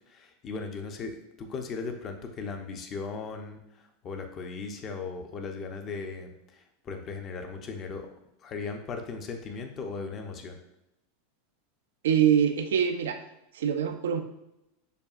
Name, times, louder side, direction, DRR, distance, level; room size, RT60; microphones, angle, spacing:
voice 1, 0.1-8.1 8.4-10.6, left 4 dB, 35° left, 5 dB, 0.7 m, -37 dB
voice 2, 12.0-13.2 13.5-14.2, right 8 dB, 80° right, 7 dB, 0.3 m, -24 dB
6.6 x 2.3 x 2.5 m, 0.88 s
hypercardioid pair, 105°, 0 cm